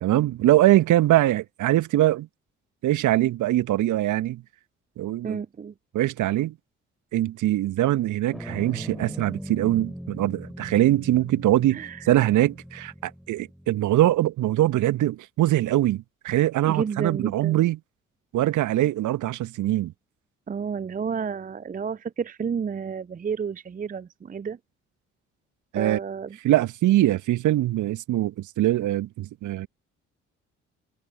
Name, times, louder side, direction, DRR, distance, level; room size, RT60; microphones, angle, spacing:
voice 1, 0.0-2.3 2.8-4.4 5.0-5.4 5.9-6.5 7.1-17.8 18.3-19.9 25.7-26.0 26.4-29.7, right 14 dB, 55° right, 1.9 m, -22 dB
voice 2, 5.2-5.7 11.7-12.3 16.6-17.7 20.5-24.6 25.7-26.4, right 6 dB, 25° right, 0.8 m, -31 dB
sound 1, 8.3-14.1, equal, ahead, 4.0 m, -40 dB
figure-of-eight pair, 45°, 36 cm